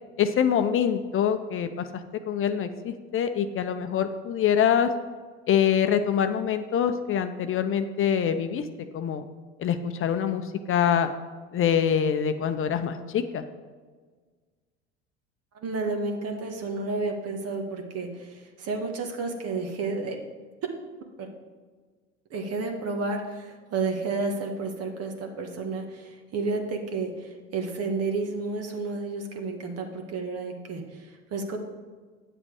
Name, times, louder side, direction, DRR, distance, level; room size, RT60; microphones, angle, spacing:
voice 1, 0.2-4.9 5.5-8.7 8.9-9.2 9.6-11.1 11.5-13.4, left 8 dB, 40° left, 9 dB, 0.7 m, -25 dB
voice 2, 15.5-20.2 21.2-21.3 22.3-31.6, right 3 dB, 50° right, 4 dB, 1.6 m, -31 dB
8.9 x 7.3 x 4.9 m, 1.5 s
hypercardioid pair, 75°, 32 cm